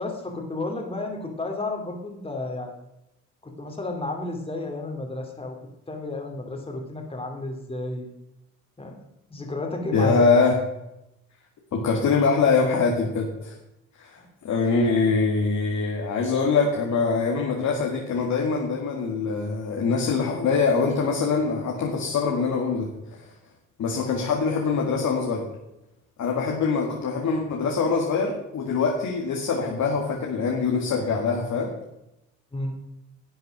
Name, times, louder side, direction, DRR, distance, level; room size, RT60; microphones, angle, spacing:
voice 1, 0.0-2.7 3.4-5.6 5.9-8.1 8.8-9.0 9.3-10.2 14.2-14.3 32.5-32.8, left 2 dB, 20° left, 2 dB, 2.6 m, -32 dB
voice 2, 9.9-10.6 11.7-13.6 14.0-23.3 23.8-25.5 26.2-31.7, left 4 dB, 65° left, 0 dB, 2.2 m, -23 dB
11.5 x 7.9 x 6.0 m, 0.89 s
cardioid pair, 90°, 30 cm